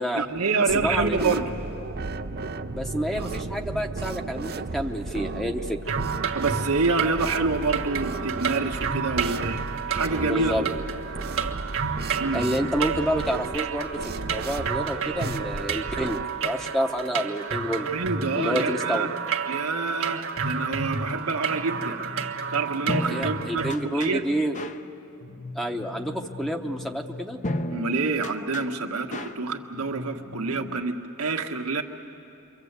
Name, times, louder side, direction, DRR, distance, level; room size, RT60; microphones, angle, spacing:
voice 1, 0.2-1.5 6.3-10.5 12.2-12.5 17.9-19.1 19.5-22.0 22.5-24.2 27.7-31.8, right 4 dB, 85° right, 4 dB, 1.6 m, -27 dB
voice 2, 0.7-1.3 2.7-5.8 10.2-10.6 12.3-17.9 18.4-19.1 23.1-24.6 25.5-27.4, equal, ahead, 3 dB, 0.9 m, -29 dB
sound 1, 0.7-16.3, right 3 dB, 45° right, 0.7 m, -34 dB
sound 2, 5.9-23.8, right 6 dB, 65° right, 1.5 m, -31 dB
sound 3, 21.5-30.8, left 1 dB, 35° left, 0.8 m, -36 dB
28.5 x 24.0 x 8.2 m, 2.8 s
head